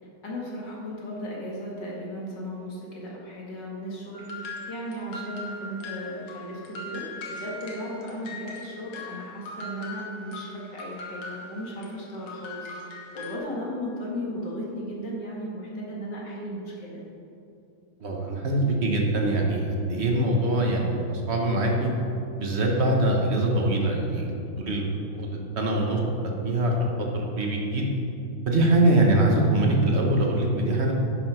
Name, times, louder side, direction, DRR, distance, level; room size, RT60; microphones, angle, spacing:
voice 1, 0.2-17.0, equal, 55° left, -3 dB, 2.4 m, -36 dB
sound 1, 4.1-13.4, left 2 dB, 75° left, 2.3 m, -40 dB
voice 2, 18.0-21.9 22.4-26.0 26.4-26.9 27.1-27.9 28.4-30.9, right 1 dB, 35° right, 0 dB, 1.3 m, -23 dB
10.5 x 6.9 x 5.8 m, 2.7 s
omnidirectional pair, 2.4 m